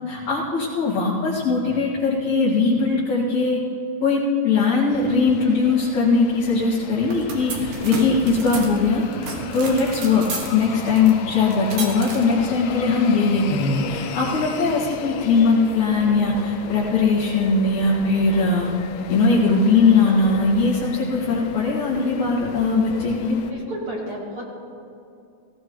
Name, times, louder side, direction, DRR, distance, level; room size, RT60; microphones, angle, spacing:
voice 1, 0.1-3.6 4.0-9.0 9.5-18.7 19.1-23.4, left 4 dB, 60° left, -7 dB, 3.1 m, -20 dB
sound 1, 4.9-23.5, left 8 dB, 90° left, 2.3 m, -36 dB
Snack Automat Westfalenkolleg, 6.9-14.3, right 4 dB, 75° right, 3.3 m, -34 dB
voice 2, 23.5-24.4, right 1 dB, 45° right, -5 dB, 2.7 m, -32 dB
18.5 x 17.0 x 3.1 m, 2.6 s
omnidirectional pair, 3.8 m